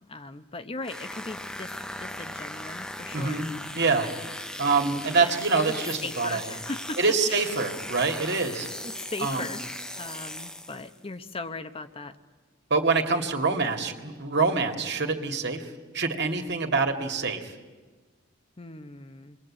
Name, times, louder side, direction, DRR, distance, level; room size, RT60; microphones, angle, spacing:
voice 1, 0.1-3.4 5.2-5.3 5.7-7.0 7.3-7.5 8.8-9.6 10.0-12.2 18.6-19.4, left 3 dB, 30° left, 9 dB, 0.9 m, -38 dB
sound 1, 0.8-11.0, left 1 dB, 5° left, 0.8 m, -38 dB
voice 2, 3.1-4.1 4.6-6.4 7.0-8.7 9.2-9.5 12.7-17.5, right 4 dB, 60° right, 5 dB, 2.4 m, -26 dB
28.5 x 22.0 x 8.8 m, 1.3 s
head